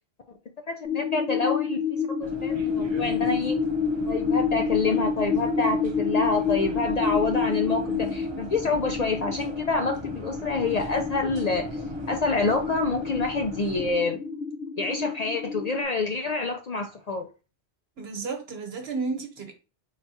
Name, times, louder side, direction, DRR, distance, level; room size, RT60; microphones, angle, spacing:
sound 1, 0.8-15.8, left 6 dB, 75° left, 1.1 m, -29 dB
voice 1, 0.8-3.6 4.1-11.8 12.1-14.2 14.8-17.3, left 3 dB, 55° left, 0.5 m, -27 dB
sound 2, 2.2-13.9, right 3 dB, 40° right, 0.4 m, -41 dB
voice 2, 18.0-19.5, right 4 dB, 70° right, 1.2 m, -32 dB
4.0 x 2.2 x 4.1 m
omnidirectional pair, 1.1 m